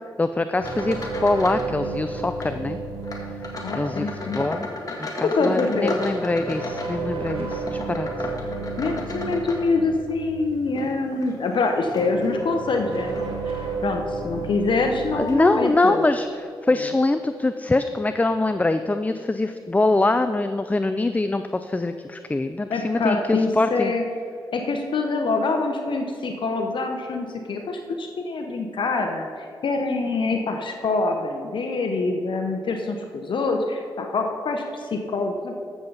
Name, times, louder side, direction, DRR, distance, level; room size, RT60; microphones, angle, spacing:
voice 1, 0.2-2.8 3.7-4.7 5.0-8.3 15.1-23.9, left 2 dB, 15° left, 10 dB, 0.4 m, -23 dB
sound 1, 0.6-1.7 2.0-2.6 3.0-10.1 10.6-12.5 13.1-13.3 13.9-14.0 14.9-15.0 15.3-15.4, left 2 dB, 40° left, 1.9 m, -35 dB
sound 2, 0.6-4.8 5.6-11.3 11.7-15.2, right 3 dB, 85° right, 1.9 m, -33 dB
voice 2, 3.6-4.4 5.3-6.0 8.8-16.1 22.7-24.0 24.5-35.6, left 3 dB, 65° left, 4 dB, 0.9 m, -25 dB
13.0 x 7.3 x 4.0 m, 2.4 s
cardioid pair, 55°, 9 cm